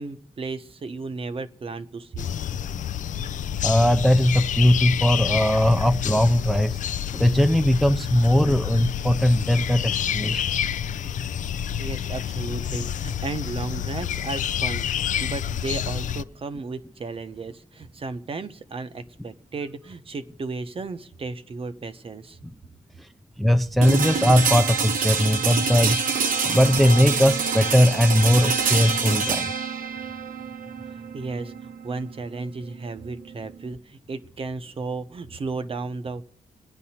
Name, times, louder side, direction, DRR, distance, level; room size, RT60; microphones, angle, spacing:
voice 1, 0.0-2.3 11.8-14.9 15.2-22.4 29.1-29.9 30.9-36.2, right 3 dB, 40° right, 0.8 m, -34 dB
sound 1, 2.2-16.2, left 9 dB, 60° left, 0.4 m, -28 dB
voice 2, 3.6-6.8 7.1-10.4 23.4-26.0 26.4-29.5, left 1 dB, ahead, 0.5 m, -19 dB
sound 2, 23.8-33.7, right 5 dB, 70° right, 1.1 m, -26 dB
28.5 x 9.8 x 2.8 m
cardioid pair, 85°, 15 cm